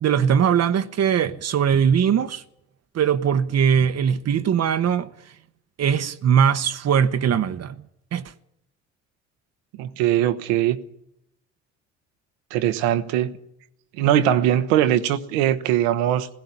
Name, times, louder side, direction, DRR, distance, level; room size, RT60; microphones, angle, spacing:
voice 1, 0.0-2.4 2.9-5.1 5.8-7.8 8.1-8.2, right 8 dB, 50° right, 1.0 m, -20 dB
voice 2, 9.8-10.8 12.5-13.3 14.0-16.3, right 11 dB, 80° right, 1.1 m, -21 dB
17.0 x 16.5 x 9.7 m
hypercardioid pair, 65°, 33 cm